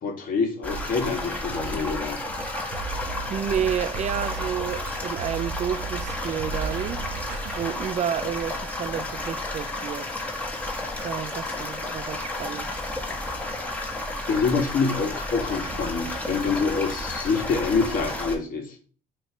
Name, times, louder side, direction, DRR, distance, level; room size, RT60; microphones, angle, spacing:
voice 1, 0.0-2.2 14.3-18.8, left 4 dB, 55° left, 2.2 m, -26 dB
sound 1, 0.6-18.4, left 2 dB, 10° left, 1.6 m, -32 dB
sound 2, 0.7-7.7, right 7 dB, 85° right, 0.7 m, -37 dB
voice 2, 3.3-7.0 7.6-10.2 11.0-12.7, right 9 dB, 40° right, 0.5 m, -30 dB
8.7 x 3.3 x 5.0 m
cardioid pair, 110°, 17 cm